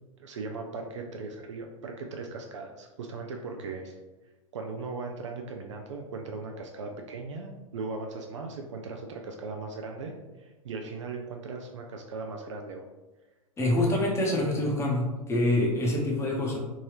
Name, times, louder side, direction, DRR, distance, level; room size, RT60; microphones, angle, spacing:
voice 1, 0.2-4.0 4.5-12.9, right 3 dB, 55° right, 3 dB, 0.4 m, -38 dB
voice 2, 13.6-16.6, left 1 dB, 15° left, -1 dB, 0.8 m, -26 dB
3.6 x 2.6 x 3.1 m, 1.1 s
figure-of-eight pair, 95°, 18 cm